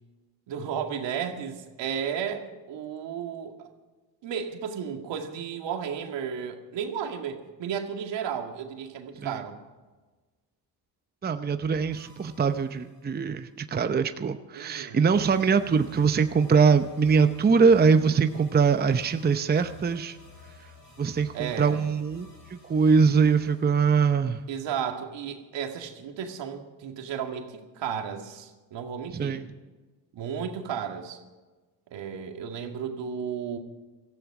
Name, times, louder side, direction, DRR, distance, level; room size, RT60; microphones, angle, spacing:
voice 1, 0.5-3.7 4.2-9.6 14.5-15.0 21.3-21.9 24.5-29.4 30.1-31.2 31.9-33.6, right 7 dB, 70° right, 4 dB, 2.1 m, -33 dB
voice 2, 11.2-20.2 21.0-24.4 29.1-29.5, right 5 dB, 20° right, 9 dB, 0.7 m, -23 dB
sound 1, 11.6-13.5 15.1-24.8, left 4 dB, 50° left, 6.6 m, -52 dB
17.5 x 14.0 x 4.9 m, 1.3 s
cardioid pair, 80°, 45 cm